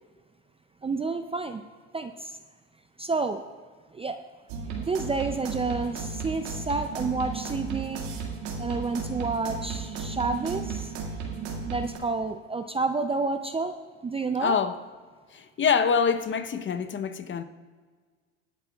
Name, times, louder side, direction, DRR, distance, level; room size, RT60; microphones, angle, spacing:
voice 1, 0.8-1.6 1.9-2.4 3.0-3.4 3.9-4.2 4.8-8.1 8.6-10.9 11.7-13.7 14.0-14.6, right 3 dB, 15° right, 0.5 m, -29 dB
sound 1, 4.5-12.0, right 5 dB, 75° right, 2.1 m, -34 dB
voice 2, 14.4-14.8 15.3-17.4, left 6 dB, 35° left, 0.8 m, -25 dB
22.5 x 8.3 x 2.4 m
supercardioid pair, 85°, 35 cm